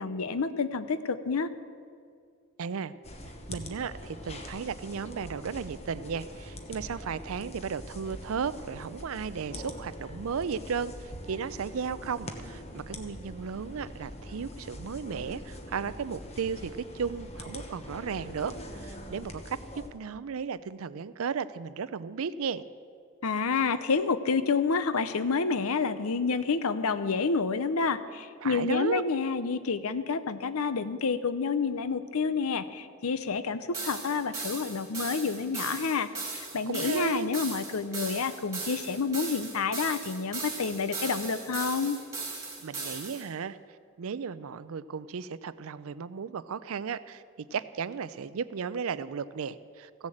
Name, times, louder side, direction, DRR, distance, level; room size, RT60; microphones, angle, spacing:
voice 1, 0.0-1.5 23.2-42.0, left 5 dB, 75° left, 13 dB, 0.7 m, -29 dB
voice 2, 2.6-2.9 3.5-19.6 19.9-22.6 28.4-29.0 36.7-37.3 42.6-43.6 44.0-50.1, right 6 dB, 70° right, 16 dB, 0.4 m, -35 dB
sound 1, 3.0-19.9, left 1 dB, 30° left, 1.1 m, -43 dB
sound 2, 33.7-43.3, right 4 dB, 15° right, 2.0 m, -38 dB
15.0 x 7.3 x 7.8 m, 2.2 s
head